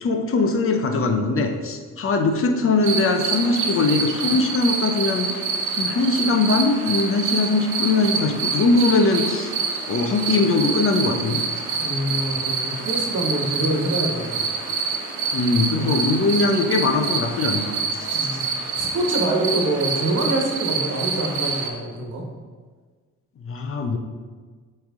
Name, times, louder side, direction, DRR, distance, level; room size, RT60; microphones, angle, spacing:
voice 1, 0.0-5.3 5.8-9.5 9.9-11.4 15.3-17.7 23.4-24.0, left 3 dB, 45° left, 4 dB, 0.7 m, -21 dB
sound 1, 2.8-21.7, right 5 dB, 80° right, 1.0 m, -26 dB
voice 2, 11.8-14.4 14.8-14.9 15.7-16.0 18.1-18.4 18.8-22.2, right 1 dB, 55° right, 1 dB, 1.3 m, -25 dB
7.9 x 3.3 x 3.6 m, 1.5 s
cardioid pair, 90°, 30 cm